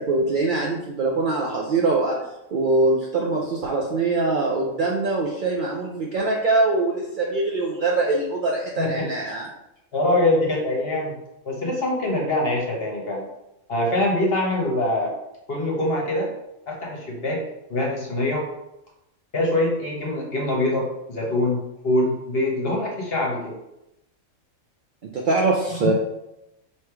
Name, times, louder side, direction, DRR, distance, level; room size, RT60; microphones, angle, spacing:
voice 1, 0.0-2.2 2.5-9.5 25.1-25.9, right 3 dB, 65° right, -2 dB, 0.5 m, -23 dB
voice 2, 8.8-9.1 9.9-11.1 11.4-13.3 13.7-15.1 15.5-16.3 16.7-17.4 17.7-18.5 19.3-21.6 21.8-23.6 25.8-25.9, left 1 dB, 50° left, -1 dB, 1.0 m, -24 dB
3.2 x 2.9 x 4.5 m, 0.88 s
omnidirectional pair, 1.5 m